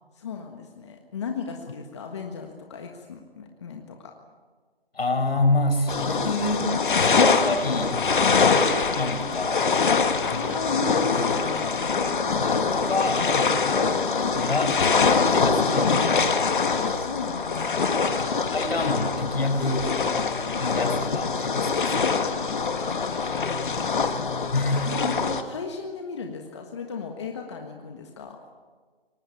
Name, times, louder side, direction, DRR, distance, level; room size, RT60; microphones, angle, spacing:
voice 1, 0.1-4.1 8.2-8.4 9.9-11.7 16.6-18.2 22.7-24.0 24.4-24.5 24.8-28.4, left 5 dB, 25° left, 3 dB, 1.5 m, -36 dB
voice 2, 4.9-8.0 8.5-9.7 10.2-10.5 10.9-11.5 12.4-13.6 14.2-16.3 18.1-19.9 20.6-22.2 24.5-25.2, left 2 dB, 70° left, 6 dB, 5.6 m, -28 dB
sound 1, 5.9-25.4, left 5 dB, 50° left, 1.8 m, -24 dB
23.5 x 20.0 x 8.6 m, 1.5 s
hypercardioid pair, 165°, 31 cm